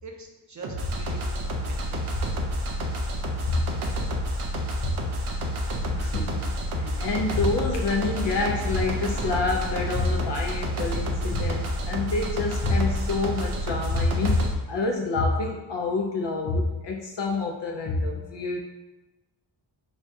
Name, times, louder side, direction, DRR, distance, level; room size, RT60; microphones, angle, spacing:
voice 1, 0.0-2.0, right 3 dB, 35° right, 1 dB, 0.6 m, -44 dB
sound 1, 0.6-14.5, equal, 75° right, 0.7 m, -29 dB
voice 2, 5.9-18.6, left 3 dB, 60° left, 1 dB, 0.5 m, -27 dB
Brass instrument, 7.0-10.9, left 3 dB, 35° left, 0.9 m, -45 dB
5.0 x 2.2 x 2.6 m, 1.1 s
cardioid pair, 75°, 50 cm